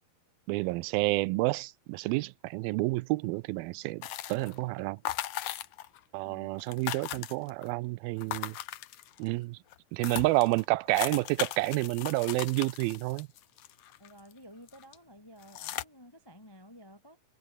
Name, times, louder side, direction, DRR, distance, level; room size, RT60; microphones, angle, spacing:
voice 1, 0.5-5.0 6.1-8.6 9.2-9.6 9.9-13.3, right 21 dB, 85° right, 2.4 m, -29 dB
sound 1, 4.0-4.6 5.1-6.0 6.3-6.4 6.6-7.7 8.2-9.3 9.7-9.8 10.0-14.3 14.7-15.0 15.4-15.8, left 13 dB, 65° left, 2.1 m, -38 dB
voice 2, 14.0-17.2, equal, 35° left, 0.3 m, -53 dB
omnidirectional pair, 4.2 m